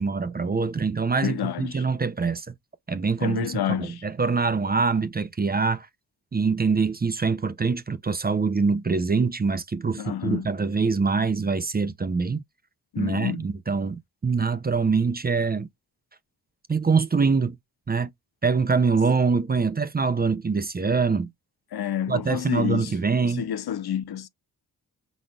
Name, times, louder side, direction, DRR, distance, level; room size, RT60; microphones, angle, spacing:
voice 1, 0.0-2.5 2.9-5.9 6.3-12.4 13.0-15.7 16.7-17.6 17.9-18.1 18.4-21.3 22.1-23.5, right 4 dB, 25° right, 0.5 m, -24 dB
voice 2, 1.2-1.8 3.2-4.0 10.0-10.5 12.9-13.4 21.7-22.9 23.2-24.3, left 10 dB, 80° left, 0.6 m, -29 dB
5.0 x 4.0 x 2.3 m
wide cardioid pair, 115°, 37 cm